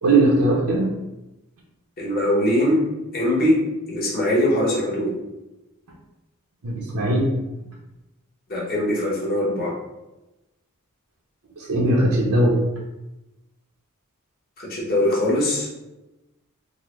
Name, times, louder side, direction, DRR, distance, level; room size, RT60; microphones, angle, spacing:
voice 1, 0.0-0.9 6.6-7.3 11.6-12.6, right 2 dB, 80° right, -2 dB, 0.7 m, -19 dB
voice 2, 2.0-2.8 3.1-3.6 3.9-5.2 8.5-9.7 14.6-15.7, left 1 dB, 40° left, -5 dB, 1.0 m, -21 dB
3.7 x 2.0 x 3.0 m, 0.99 s
head